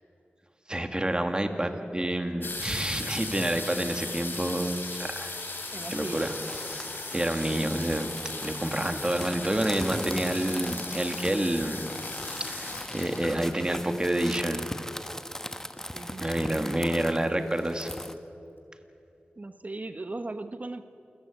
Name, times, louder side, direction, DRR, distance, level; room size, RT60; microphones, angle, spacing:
voice 1, 0.7-5.4 5.9-6.3 7.1-11.9 12.4-14.7 16.2-17.9, right 1 dB, 25° right, 6 dB, 2.1 m, -28 dB
sound 1, 2.4-15.0 15.8-15.9 16.1-16.5 16.8-17.4 17.9-18.0 18.2-18.3, left 3 dB, 65° left, 3.6 m, -38 dB
sound 2, 5.4-18.1, left 1 dB, 15° left, 1.2 m, -40 dB
voice 2, 5.7-6.3 15.9-16.7 19.4-20.8, right 2 dB, 40° right, 9 dB, 1.1 m, -39 dB
28.0 x 15.0 x 8.5 m, 2.8 s
wide cardioid pair, 55°, 4 cm